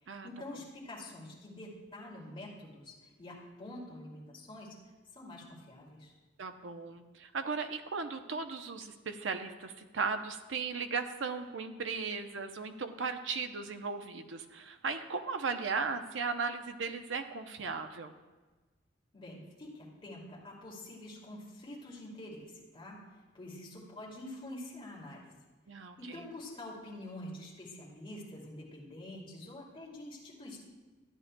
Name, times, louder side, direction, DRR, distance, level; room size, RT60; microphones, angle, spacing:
voice 1, 0.0-4.8 5.1-6.1 19.1-25.3 25.8-30.6, left 1 dB, 30° left, -4 dB, 2.4 m, -47 dB
voice 2, 6.4-18.1 25.7-26.2, right 5 dB, 80° right, 7 dB, 0.7 m, -37 dB
14.0 x 9.7 x 2.2 m, 1.2 s
head